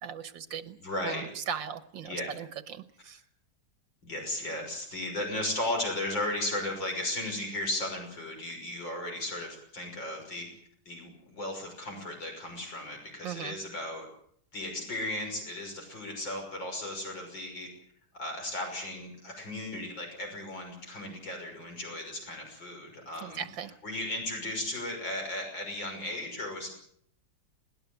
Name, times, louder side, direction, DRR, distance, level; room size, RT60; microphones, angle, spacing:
voice 1, 0.0-0.8 1.0-3.2 13.2-13.6 23.2-23.7, right 8 dB, 90° right, 12 dB, 1.8 m, -38 dB
voice 2, 0.8-1.3 2.0-2.3 4.0-10.5 10.8-14.0 14.5-17.7 18.1-23.4 23.8-26.7, left 1 dB, 85° left, 2 dB, 6.8 m, -35 dB
21.0 x 18.5 x 8.2 m, 0.64 s
omnidirectional pair, 2.0 m